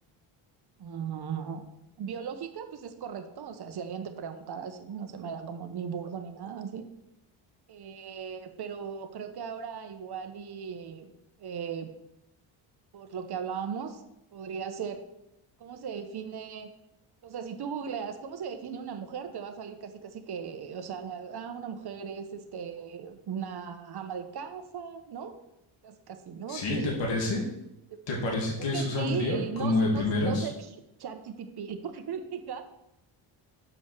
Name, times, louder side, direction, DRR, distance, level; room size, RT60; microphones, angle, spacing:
voice 1, 0.8-1.7 2.0-6.9 7.7-11.1 11.4-11.9 12.9-14.0 14.3-15.0 15.6-16.7 17.2-25.3 25.8-27.0 27.9-28.0 28.7-32.6, right 7 dB, 50° right, 7 dB, 1.1 m, -37 dB
voice 2, 26.5-27.4 28.1-30.5, left 2 dB, 60° left, -2 dB, 2.5 m, -28 dB
7.3 x 5.1 x 6.6 m, 0.86 s
cardioid pair, 120°, 49 cm